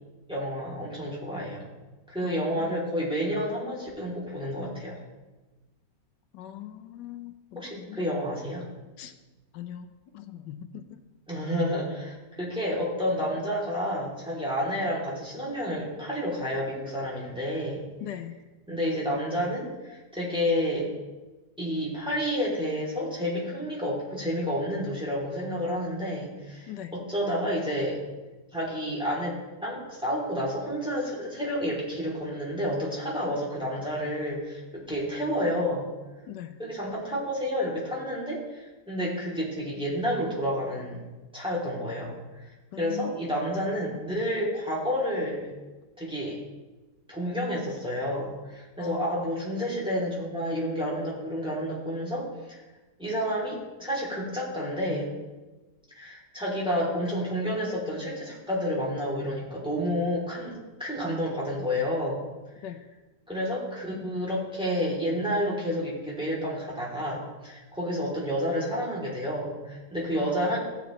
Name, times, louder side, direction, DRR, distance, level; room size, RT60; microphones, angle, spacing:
voice 1, 0.3-1.7 2.1-5.0 7.5-8.6 11.3-17.8 18.7-20.9 21.6-28.0 28.5-35.9 36.6-41.0 41.3-45.5 46.0-46.4 47.1-52.6 53.0-55.1 55.9-60.5 60.8-62.2 63.3-70.6, equal, 5° right, -6 dB, 2.9 m, -30 dB
voice 2, 2.2-2.7 6.3-8.0 9.0-9.1 9.5-9.9 10.1-11.0 18.0-18.3 26.7-26.9 36.3-36.6 42.7-43.1 48.8-49.1 62.6-62.8 70.1-70.4, left 11 dB, 85° left, 8 dB, 1.3 m, -40 dB
16.5 x 7.0 x 3.2 m, 1.2 s
omnidirectional pair, 1.9 m